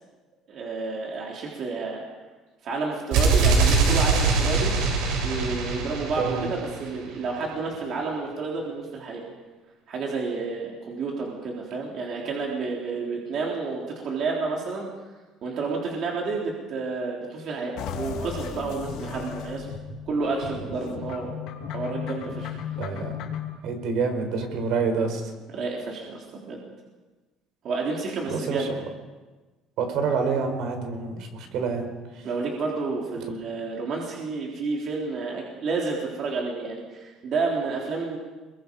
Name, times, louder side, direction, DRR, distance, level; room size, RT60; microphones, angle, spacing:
voice 1, 0.5-2.0 2.6-4.7 5.2-9.2 9.9-15.1 15.4-19.7 20.1-21.3 21.7-22.6 25.5-26.6 27.6-28.7 32.2-38.2, right 4 dB, 40° right, -2 dB, 3.7 m, -30 dB
sound 1, 3.1-7.0, right 4 dB, 80° right, 7.0 m, -22 dB
voice 2, 6.2-6.5 22.8-23.1 23.6-25.3 28.3-28.6 29.8-31.9, right 5 dB, 55° right, 6 dB, 4.5 m, -27 dB
sound 2, 17.8-23.6, left 7 dB, 65° left, 3.3 m, -35 dB
29.0 x 22.5 x 5.4 m, 1.2 s
cardioid pair, 180°, 0 cm